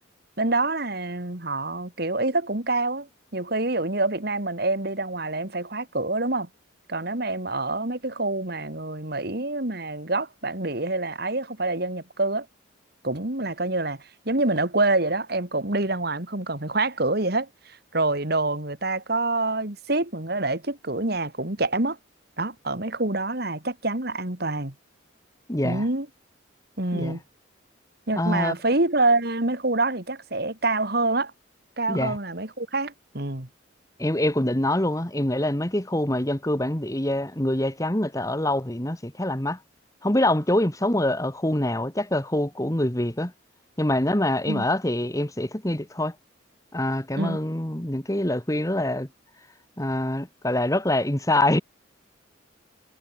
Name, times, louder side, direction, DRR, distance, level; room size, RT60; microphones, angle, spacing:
voice 1, 0.4-3.1 3.3-6.5 6.9-12.5 13.0-14.0 14.3-22.0 22.4-24.7 25.6-26.1 26.8-27.2 28.1-31.3 31.8-33.5 44.5-44.7 47.2-47.4, right 2 dB, 55° right, 2.6 m, -26 dB
voice 2, 25.5-25.8 26.9-27.2 28.2-28.5 31.9-32.2 34.0-39.6 40.0-43.3 43.8-46.1 46.7-49.1 49.8-51.6, left 1 dB, 15° left, 1.5 m, -25 dB
head